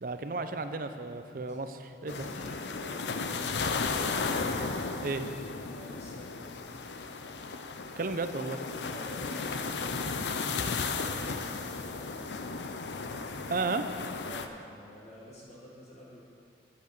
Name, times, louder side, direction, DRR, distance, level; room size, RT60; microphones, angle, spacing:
voice 1, 0.0-2.1 5.0-5.2 7.9-8.6 13.5-13.9, right 3 dB, 50° right, 9 dB, 0.5 m, -33 dB
voice 2, 2.0-4.1 5.7-6.5 8.7-12.3 14.2-16.2, left 1 dB, 40° left, -5 dB, 1.4 m, -49 dB
sound 1, 2.1-14.5, left 4 dB, 80° left, 0.6 m, -34 dB
8.6 x 8.2 x 6.6 m, 2.5 s
head